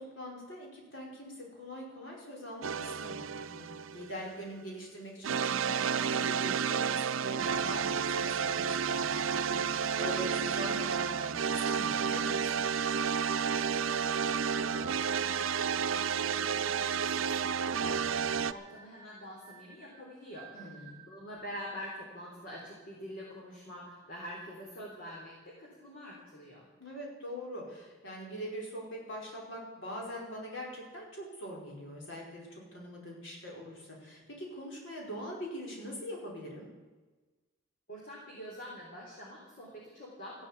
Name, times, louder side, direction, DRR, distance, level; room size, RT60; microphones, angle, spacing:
voice 1, 0.0-12.6 20.5-21.0 26.8-36.7, equal, 65° left, -2 dB, 5.0 m, -43 dB
sound 1, 2.6-4.3 5.2-18.5, right 7 dB, 85° right, 0.6 m, -31 dB
voice 2, 13.6-14.2 14.5-26.7 37.9-40.5, equal, 45° left, -3 dB, 3.9 m, -46 dB
sound 2, 16.2-21.2, right 6 dB, 20° right, 2.2 m, -54 dB
15.0 x 11.5 x 8.3 m, 1.3 s
head